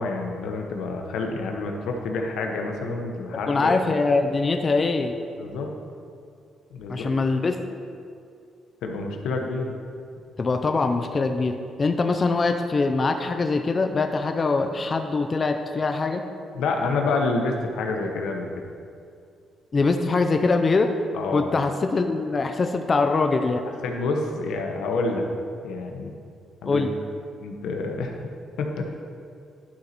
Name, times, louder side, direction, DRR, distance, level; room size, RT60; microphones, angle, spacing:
voice 1, 0.0-3.7 5.4-5.7 6.7-7.0 8.8-9.8 16.6-18.5 21.1-21.5 23.8-25.3 25.6-26.1 26.6-26.8 27.4-28.2 28.6-28.9, left 3 dB, 90° left, 2 dB, 0.9 m, -28 dB
voice 2, 3.5-5.1 6.9-7.6 10.4-16.2 19.7-20.9 21.3-23.6 26.7-26.9, left 3 dB, 25° left, 5 dB, 0.4 m, -23 dB
11.5 x 4.0 x 4.3 m, 2.4 s
cardioid pair, 160°, 0 cm